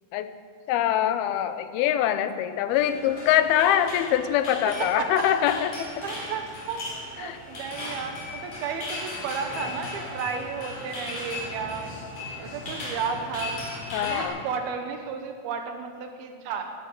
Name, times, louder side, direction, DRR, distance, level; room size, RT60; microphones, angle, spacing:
voice 1, 0.7-6.0 7.2-7.4 13.9-14.4, left 11 dB, 85° left, 11 dB, 2.7 m, -24 dB
sound 1, 2.7-14.2, left 2 dB, 50° left, 4.9 m, -37 dB
voice 2, 6.0-11.9 12.4-13.6 14.0-16.6, right 6 dB, 80° right, 5 dB, 3.0 m, -33 dB
14.0 x 11.0 x 8.4 m, 2.1 s
omnidirectional pair, 4.4 m